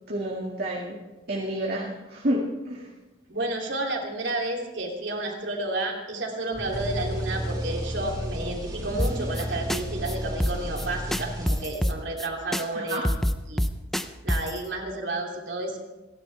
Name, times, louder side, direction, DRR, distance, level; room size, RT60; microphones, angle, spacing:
voice 1, 0.1-1.0 1.3-2.9 12.8-13.0, right 1 dB, 50° right, -3 dB, 2.0 m, -29 dB
voice 2, 3.3-13.0 13.5-13.6 14.2-15.8, right 2 dB, 70° right, 1 dB, 3.0 m, -31 dB
sound 1, 6.5-12.0, equal, 20° right, 4.5 m, -33 dB
sound 2, 9.0-9.4 9.7-9.8 10.1-10.2 10.4-10.9 11.1-12.3 12.5-12.6 12.9-14.6, equal, ahead, 0.6 m, -25 dB
29.5 x 11.5 x 3.4 m, 1.1 s
head